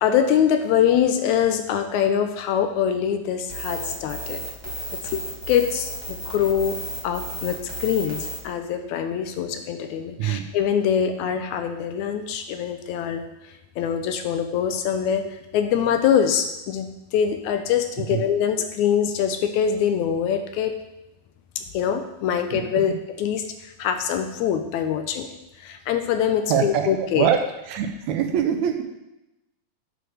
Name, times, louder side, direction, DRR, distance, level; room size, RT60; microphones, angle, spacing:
voice 1, 0.0-4.4 4.9-6.8 7.0-13.2 13.8-20.7 21.6-25.3 25.6-27.3, left 8 dB, 80° left, 7 dB, 1.9 m, -24 dB
sound 1, 3.5-8.4, left 1 dB, 35° left, 0.4 m, -33 dB
voice 2, 26.5-27.4 27.7-28.8, right 8 dB, 75° right, 6 dB, 1.9 m, -23 dB
7.7 x 3.3 x 6.3 m, 0.93 s
omnidirectional pair, 3.4 m